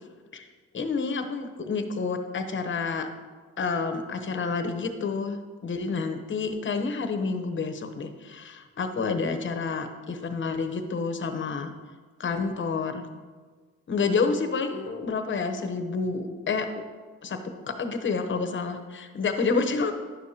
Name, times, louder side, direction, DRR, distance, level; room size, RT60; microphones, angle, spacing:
voice 1, 0.7-3.1 3.6-11.7 12.2-13.1 13.9-16.8 17.2-19.9, left 4 dB, 40° left, 7 dB, 0.9 m, -29 dB
10.5 x 6.5 x 2.8 m, 1.4 s
cardioid pair, 90°, 30 cm